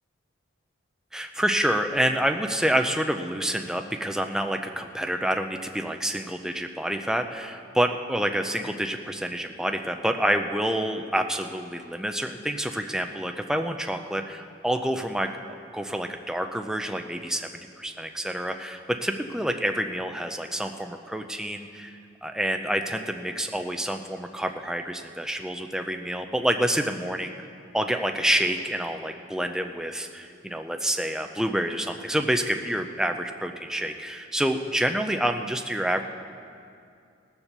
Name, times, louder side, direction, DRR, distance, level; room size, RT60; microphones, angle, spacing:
voice 1, 1.1-15.3 15.7-17.5 17.8-27.3 27.7-36.0, right 1 dB, 5° right, 5 dB, 0.5 m, -28 dB
17.5 x 7.2 x 6.7 m, 2.4 s
head